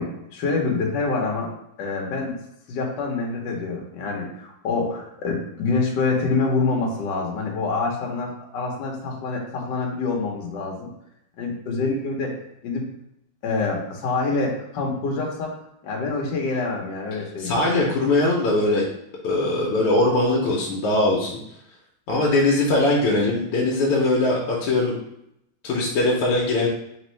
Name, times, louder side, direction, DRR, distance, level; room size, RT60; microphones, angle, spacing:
voice 1, 0.0-1.5 1.8-2.4 2.7-10.9 11.4-12.3 12.6-12.8 13.4-15.5 15.8-17.6, left 3 dB, 60° left, 0 dB, 1.4 m, -26 dB
voice 2, 17.4-18.8 19.2-21.4 22.1-25.0 25.6-26.7, left 2 dB, 85° left, -3 dB, 1.7 m, -21 dB
4.3 x 3.5 x 3.1 m, 0.78 s
omnidirectional pair, 2.4 m